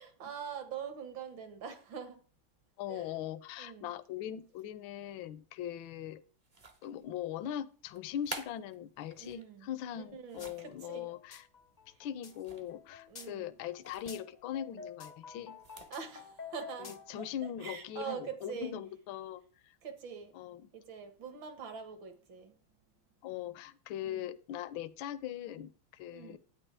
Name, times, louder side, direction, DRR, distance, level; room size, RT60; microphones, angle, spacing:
voice 1, 0.0-2.2 2.9-3.1 3.6-3.9 9.2-9.7 10.0-11.1 13.1-13.5 15.9-17.3 17.6-18.8 19.8-20.4 20.7-22.6 24.0-24.3 26.1-26.4, right 7 dB, 65° right, 2.2 m, -44 dB
voice 2, 2.8-6.2 6.8-11.4 12.0-15.6 16.8-19.8 20.3-20.7 23.2-26.4, left 10 dB, 75° left, 1.4 m, -41 dB
sound 1, 6.4-7.1 7.9-9.5 10.0-10.7 12.3-12.8 13.1-13.2 13.8-14.2 15.5-16.0, right 3 dB, 35° right, 0.6 m, -48 dB
sound 2, 10.4-10.5 10.8-17.3, left 6 dB, 50° left, 0.5 m, -50 dB
10.0 x 9.2 x 3.4 m
omnidirectional pair, 2.3 m